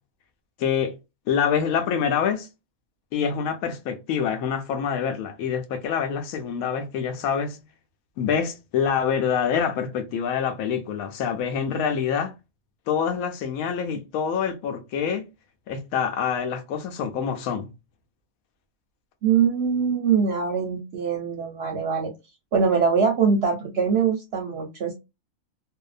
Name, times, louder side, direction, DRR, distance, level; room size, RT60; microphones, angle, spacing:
voice 1, 0.6-1.0 1.3-2.5 3.1-7.6 8.2-12.3 12.9-15.2 15.7-17.7, left 7 dB, 90° left, 1.0 m, -26 dB
voice 2, 19.2-22.1 22.5-24.9, right 6 dB, 65° right, 0.7 m, -23 dB
2.6 x 2.0 x 2.4 m
omnidirectional pair, 1.4 m